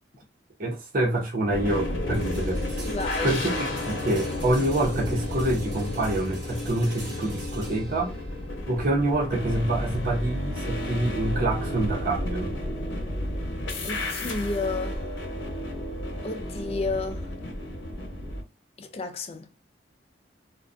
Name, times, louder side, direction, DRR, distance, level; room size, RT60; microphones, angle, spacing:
voice 1, 0.6-2.9 3.2-8.2 8.7-12.6, right 1 dB, 45° right, 0.7 m, -26 dB
sound 1, 1.5-18.4, left 1 dB, 80° left, 0.8 m, -32 dB
sound 2, 2.1-12.0, right 2 dB, 75° right, 1.0 m, -46 dB
voice 2, 2.9-3.3 13.8-15.1 16.2-17.3 18.8-19.5, left 3 dB, 30° left, 0.3 m, -31 dB
2.4 x 2.2 x 2.4 m
head